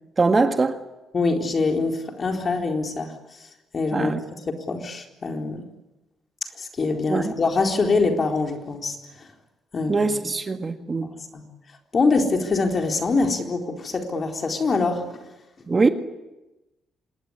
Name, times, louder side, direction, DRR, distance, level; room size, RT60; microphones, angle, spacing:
voice 1, 0.2-0.8 3.9-4.2 7.1-7.3 9.9-11.1 15.7-15.9, right 3 dB, 30° right, 1.8 m, -22 dB
voice 2, 1.1-3.1 3.7-4.1 4.7-5.6 6.6-9.3 9.7-10.1 11.0-11.5 11.9-15.2, left 3 dB, 40° left, 4.1 m, -24 dB
27.0 x 19.5 x 9.9 m
cardioid pair, 90°, 0 cm